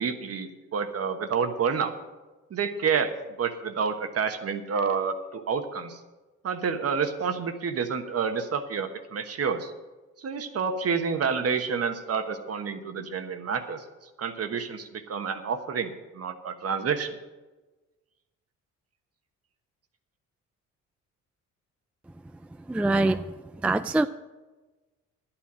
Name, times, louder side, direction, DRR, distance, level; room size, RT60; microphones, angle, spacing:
voice 1, 0.0-1.9 2.5-3.1 3.4-6.0 6.4-9.7 10.2-13.8 14.2-17.2, right 6 dB, 50° right, 8 dB, 1.3 m, -29 dB
voice 2, 22.7-23.2 23.6-24.1, right 2 dB, 5° right, 11 dB, 0.3 m, -23 dB
11.5 x 8.9 x 6.2 m, 1.2 s
cardioid pair, 90°, 30 cm